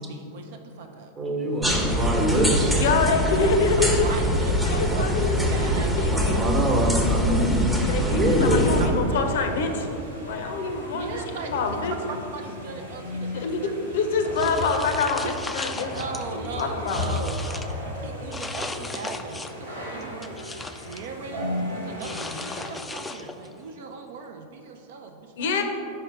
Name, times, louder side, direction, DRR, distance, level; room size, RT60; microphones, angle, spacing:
voice 1, 0.0-1.1 3.8-5.1 5.5-6.0 8.4-9.5 10.9-13.9 14.3-15.3 15.9-20.4 20.8-25.6, right 4 dB, 55° right, 5 dB, 0.4 m, -38 dB
voice 2, 1.2-2.7 6.1-8.7, equal, 30° right, 1 dB, 1.1 m, -24 dB
sound 1, 1.6-8.9, equal, 5° right, 0.7 m, -24 dB
voice 3, 2.8-4.1 4.6-6.4 7.9-9.9 10.3-12.0 13.3-15.9 16.3-17.1 22.0-22.4 25.4-25.6, left 4 dB, 55° left, 6 dB, 0.6 m, -26 dB
sound 2, 8.6-22.8, left 1 dB, 80° right, 1.2 m, -35 dB
sound 3, 14.4-16.2 16.6-17.7 18.3-19.7 20.0-21.1 22.0-23.5, left 3 dB, 10° left, 0.3 m, -36 dB
5.4 x 4.5 x 4.8 m, 2.7 s
figure-of-eight pair, 90°, 0 cm